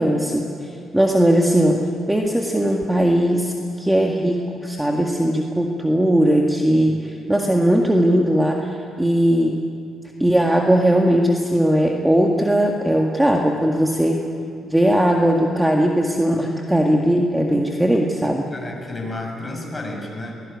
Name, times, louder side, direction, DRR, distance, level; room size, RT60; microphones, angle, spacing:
voice 1, 0.0-9.6 10.2-14.2 14.6-18.5, right 1 dB, 10° right, 1 dB, 1.9 m, -19 dB
voice 2, 18.2-20.4, left 2 dB, 20° left, 1 dB, 6.5 m, -32 dB
22.0 x 19.5 x 9.7 m, 2.4 s
cardioid pair, 90°, 0 cm